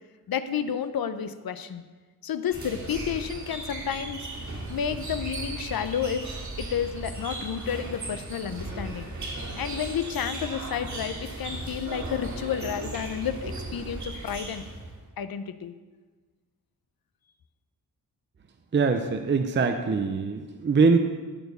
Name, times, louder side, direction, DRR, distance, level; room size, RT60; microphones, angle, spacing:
voice 1, 0.3-1.8 2.2-4.3 4.7-9.1 9.6-14.6 15.2-15.7, left 8 dB, 70° left, 11 dB, 0.7 m, -31 dB
sound 1, 2.5-15.0, right 2 dB, 50° right, 2.5 m, -36 dB
voice 2, 18.7-21.0, right 4 dB, 30° right, 6 dB, 0.6 m, -23 dB
14.0 x 4.7 x 6.7 m, 1.3 s
wide cardioid pair, 125°, 38 cm